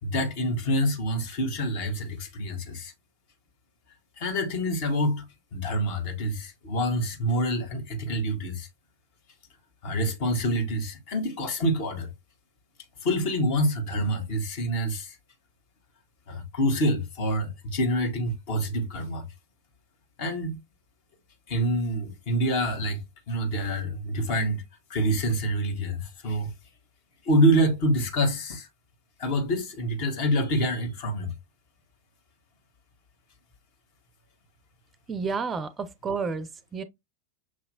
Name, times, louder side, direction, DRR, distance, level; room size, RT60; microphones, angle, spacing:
voice 1, 0.0-2.9 4.2-5.2 5.5-8.7 9.8-12.1 13.0-15.2 16.3-19.2 20.2-20.6 21.5-23.0 23.3-24.6 24.9-26.5 27.2-28.7 29.2-31.3, equal, 45° left, 1.3 m, -26 dB
voice 2, 35.1-36.8, right 5 dB, 20° right, 0.4 m, -31 dB
6.2 x 2.8 x 2.8 m
figure-of-eight pair, 90°, 0 cm